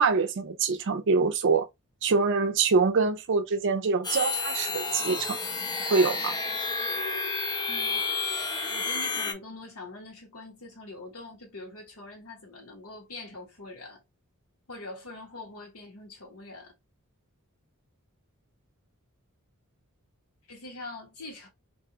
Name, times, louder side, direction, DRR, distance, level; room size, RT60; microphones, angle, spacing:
voice 1, 0.0-1.7 2.0-5.4 5.9-6.4, right 4 dB, 55° right, 0.4 m, -24 dB
sound 1, 4.0-9.3, left 4 dB, 20° left, 0.5 m, -30 dB
voice 2, 7.7-8.1 8.6-14.0 14.7-16.7 20.5-21.5, left 2 dB, 75° left, 1.2 m, -43 dB
2.6 x 2.3 x 2.7 m
head